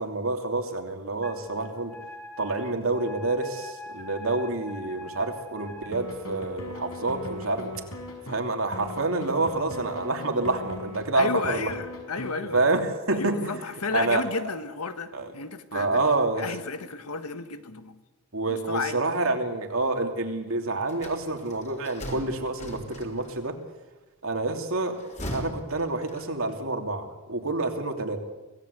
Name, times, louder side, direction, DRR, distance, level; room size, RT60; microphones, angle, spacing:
voice 1, 0.0-1.9 2.4-7.7 8.3-11.7 12.5-13.5 13.9-14.2 15.1-15.3 15.7-16.5 18.3-23.5 24.2-25.0 25.3-28.2, right 2 dB, 65° right, 2.9 m, -28 dB
Wind instrument woodwind instrument, 1.2-5.9, left 1 dB, 5° left, 2.5 m, -42 dB
sound 1, 5.9-8.4 8.7-12.3, left 2 dB, 65° left, 5.9 m, -39 dB
voice 2, 11.1-12.7 13.1-16.0 16.4-18.0 18.5-19.0, left 4 dB, 90° left, 1.6 m, -32 dB
sound 2, 20.9-23.5 24.8-26.6, equal, 30° left, 4.1 m, -39 dB
25.5 x 17.5 x 8.2 m
head